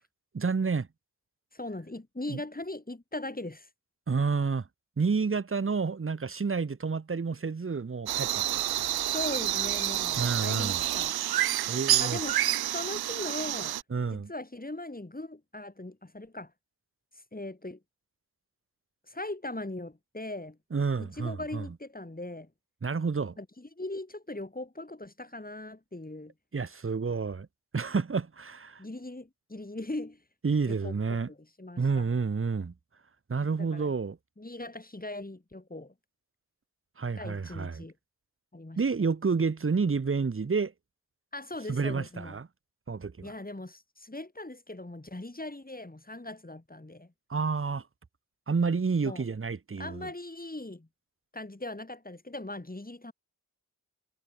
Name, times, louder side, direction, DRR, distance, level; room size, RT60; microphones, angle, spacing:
voice 1, 0.3-0.9 2.3-2.4 4.1-4.6 5.0-8.4 8.8-8.9 10.2-10.8 11.7-12.2 13.9-14.3 20.7-21.6 22.8-23.4 26.5-27.5 27.7-28.8 30.4-31.3 31.8-32.7 33.3-34.2 37.0-37.8 38.8-40.7 41.7-42.5 42.9-43.3 47.3-47.8 48.5-50.1, right 5 dB, 35° right, 1.1 m, -29 dB
voice 2, 1.5-3.7 9.0-11.2 12.0-13.8 14.1-16.5 17.3-17.8 19.1-20.6 21.0-22.5 23.4-26.3 28.8-30.2 30.7-30.9 31.3-32.1 33.6-33.9 34.4-35.9 37.1-37.9 38.5-38.8 41.3-42.4 43.2-47.1 49.0-49.2 49.8-50.9 51.3-53.1, left 2 dB, 25° left, 6.8 m, -40 dB
sound 1, 8.1-13.8, right 14 dB, 80° right, 0.5 m, -29 dB
cardioid pair, 40°, 37 cm